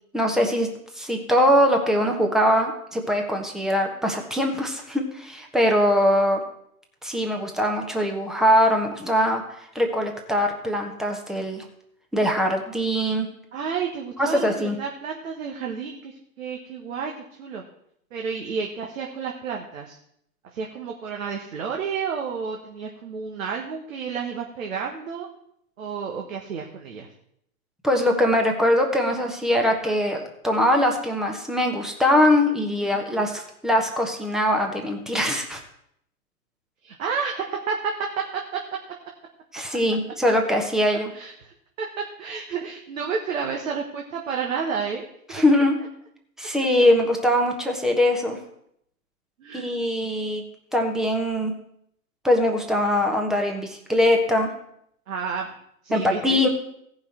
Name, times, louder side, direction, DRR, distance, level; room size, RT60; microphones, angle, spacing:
voice 1, 0.1-0.7 1.0-6.4 7.0-9.4 9.7-11.6 12.1-13.3 14.2-14.8 27.8-35.6 39.5-41.1 45.3-45.7 46.4-48.4 49.5-50.4 50.7-51.5 52.2-54.5 55.9-56.5, left 1 dB, ahead, 2 dB, 1.2 m, -22 dB
voice 2, 13.5-16.1 16.4-17.6 18.1-20.0 20.5-25.3 25.8-27.1 32.9-33.1 36.8-38.2 38.5-38.6 41.1-45.4 49.4-49.7 55.1-55.5 55.8-56.2, right 6 dB, 60° right, 1 dB, 1.5 m, -31 dB
16.5 x 5.7 x 4.4 m, 0.73 s
figure-of-eight pair, 115°, 44 cm